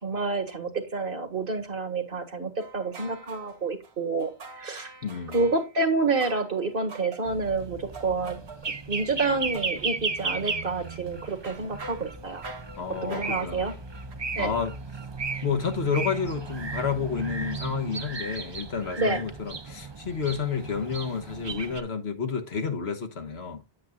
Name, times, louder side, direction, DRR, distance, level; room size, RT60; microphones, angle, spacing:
voice 1, 0.0-4.9 5.3-8.4 8.9-12.4 13.0-13.7 14.4-14.5 19.0-19.2, right 3 dB, 55° right, 1.8 m, -28 dB
sound 1, 2.6-5.7 6.2-9.1 9.5-14.1, right 3 dB, 80° right, 1.6 m, -45 dB
voice 2, 5.0-5.4 12.8-13.7 14.4-14.7 15.4-23.6, left 6 dB, 80° left, 1.5 m, -30 dB
sound 2, 7.3-21.8, right 4 dB, 30° right, 0.6 m, -35 dB
9.3 x 8.6 x 2.3 m
omnidirectional pair, 1.1 m